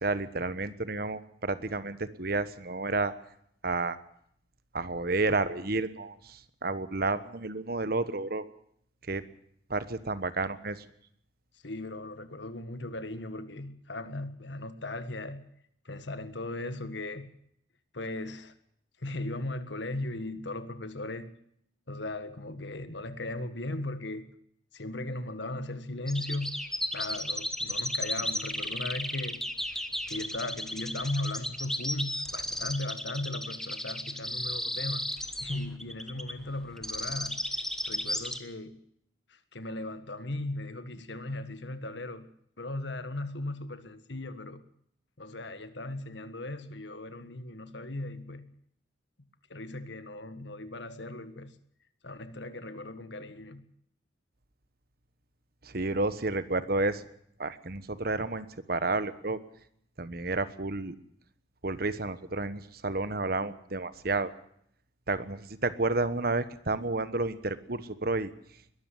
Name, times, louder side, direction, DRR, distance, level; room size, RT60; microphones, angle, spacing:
voice 1, 0.0-3.1 3.6-4.0 4.7-8.4 9.1-9.2 9.7-10.8 55.6-57.1 57.4-59.4 60.0-60.9 61.6-64.3 65.1-68.3, right 3 dB, 55° right, 13 dB, 1.3 m, -31 dB
voice 2, 11.6-15.4 15.9-17.3 17.9-18.5 19.0-21.4 21.9-24.3 24.7-26.6 26.9-29.4 29.7-35.1 35.4-37.4 37.8-38.8 39.3-42.3 42.6-44.6 45.2-48.5 49.5-51.5 52.0-53.7, left 2 dB, 70° left, 11 dB, 1.8 m, -37 dB
sound 1, 26.1-38.4, left 1 dB, 5° left, 1.3 m, -34 dB
22.0 x 13.0 x 9.3 m, 0.69 s
head